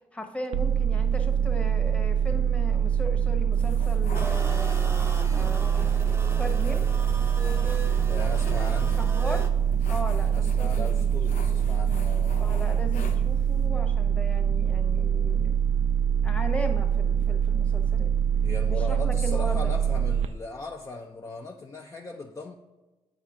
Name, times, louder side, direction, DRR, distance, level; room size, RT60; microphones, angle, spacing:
voice 1, 0.1-4.7 5.3-6.9 8.5-9.5 9.9-11.1 11.3-11.7 12.4-15.6 16.2-18.1 18.6-19.7, left 1 dB, 10° left, 3 dB, 1.1 m, -37 dB
sound 1, 0.5-20.3, right 8 dB, 80° right, 0.4 m, -24 dB
sound 2, 3.5-13.7, left 2 dB, 85° left, 0.9 m, -44 dB
sound 3, 4.1-9.5, right 2 dB, 20° right, 0.8 m, -38 dB
voice 2, 8.1-9.0 10.3-12.3 18.4-22.5, left 2 dB, 25° left, 1 dB, 0.6 m, -38 dB
8.5 x 4.9 x 3.6 m, 1.2 s
cardioid pair, 75°, 12 cm